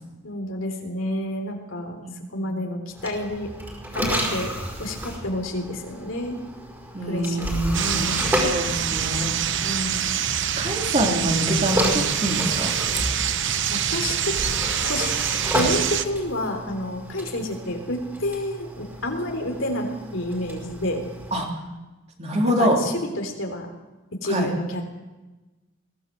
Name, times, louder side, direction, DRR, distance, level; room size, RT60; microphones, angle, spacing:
voice 1, 0.2-2.0 2.3-3.5 3.9-4.5 4.8-6.4 7.0-8.2 9.6-10.2 13.7-14.3 14.8-21.0 22.4-23.7 24.2-24.8, left 1 dB, 65° left, 4 dB, 3.6 m, -29 dB
voice 2, 2.0-2.5 6.9-9.7 10.6-12.7 21.3-21.5 22.2-22.8 24.2-24.5, right 1 dB, 30° right, 0 dB, 3.4 m, -25 dB
sound 1, 2.9-9.9 10.9-21.5, equal, 10° right, 5.0 m, -31 dB
sound 2, 7.7-16.0, right 9 dB, 60° right, 1.0 m, -25 dB
22.0 x 17.0 x 7.7 m, 1.1 s
head